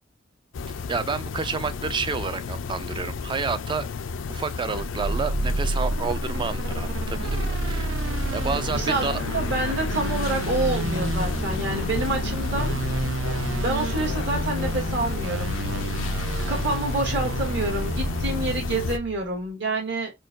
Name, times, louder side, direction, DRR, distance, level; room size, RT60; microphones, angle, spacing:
sound 1, 0.5-19.0, left 4 dB, 80° left, 0.4 m, -31 dB
voice 1, 0.9-3.9 4.3-8.0 8.3-9.2 9.7-9.8, right 5 dB, 25° right, 0.3 m, -30 dB
sound 2, 4.7-19.3, right 3 dB, 90° right, 0.6 m, -30 dB
voice 2, 8.7-9.1 9.3-12.8 13.6-15.6 16.5-20.1, right 2 dB, 65° right, 1.8 m, -27 dB
4.4 x 2.3 x 2.4 m
head